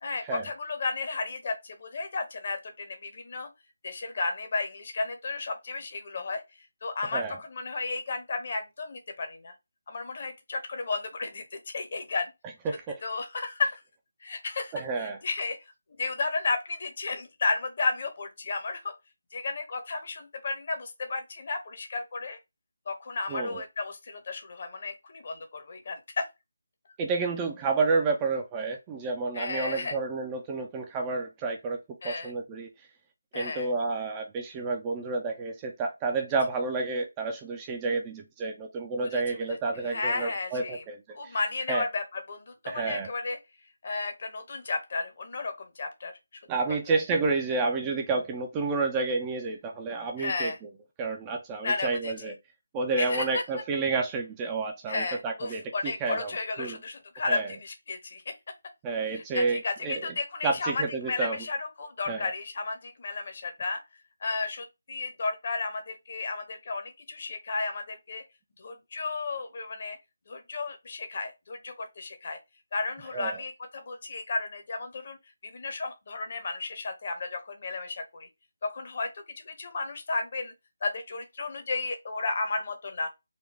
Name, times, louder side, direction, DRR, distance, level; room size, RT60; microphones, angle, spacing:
voice 1, 0.0-3.5 3.8-6.4 6.8-9.5 9.9-12.3 13.0-13.8 14.2-14.7 15.0-15.6 16.0-18.9 19.3-22.4 22.9-26.3 29.3-30.0 32.0-32.3 33.3-33.7 39.0-39.4 39.8-40.8 41.1-43.4 43.8-46.1 46.7-47.0 50.2-50.6 51.6-52.3 53.0-53.4 54.9-58.3 59.0-63.8 64.2-68.2 68.6-70.0 70.3-72.4 72.7-75.2 75.4-78.3 78.6-80.5 80.8-83.1, left 3 dB, 45° left, 1.0 m, -33 dB
voice 2, 12.6-13.0 14.7-15.2 23.3-23.6 27.0-31.8 32.0-32.7 33.3-41.0 41.2-41.4 41.7-41.8 42.7-43.1 46.5-50.7 51.0-52.3 52.7-56.3 56.6-56.8 57.3-57.5 58.8-60.0 60.4-61.4 62.1-62.3 73.1-73.4, right 3 dB, 15° right, 0.5 m, -30 dB
4.1 x 2.3 x 3.2 m
figure-of-eight pair, 155°, 0 cm